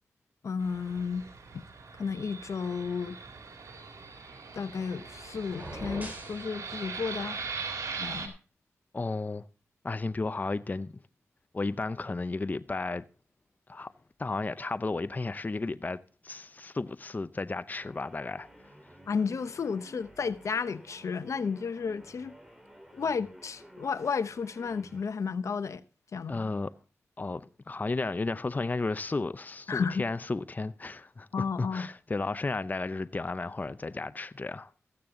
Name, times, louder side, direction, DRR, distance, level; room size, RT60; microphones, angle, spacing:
voice 1, 0.4-1.2 2.0-3.2 4.5-7.4 8.0-8.3 19.1-22.3 22.9-25.8 26.1-26.5 29.7-30.1 31.3-31.9, left 5 dB, 70° left, 0.8 m, -32 dB
Fixed-wing aircraft airplane, 0.6-8.3, right 5 dB, 80° right, 2.2 m, -41 dB
sound 1, 5.5-6.4, right 1 dB, 30° right, 4.1 m, -40 dB
voice 2, 8.9-9.4 9.8-10.9 11.5-13.0 13.7-13.9 14.2-16.0 16.2-18.5 26.3-26.7 27.2-34.7, left 3 dB, 35° left, 0.6 m, -33 dB
sound 2, 17.7-25.1, equal, 5° right, 2.5 m, -53 dB
14.0 x 8.8 x 3.8 m
cardioid pair, 55°, 5 cm